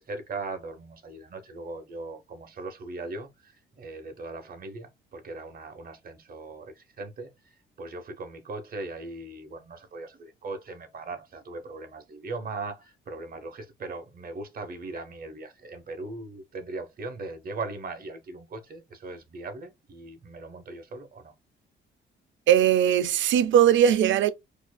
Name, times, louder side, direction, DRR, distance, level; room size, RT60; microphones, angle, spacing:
voice 1, 0.0-7.5 7.8-21.3, right 3 dB, 45° right, 1.0 m, -39 dB
voice 2, 22.5-24.3, right 9 dB, 75° right, 0.5 m, -19 dB
4.4 x 2.6 x 2.2 m
cardioid pair, 90°, 20 cm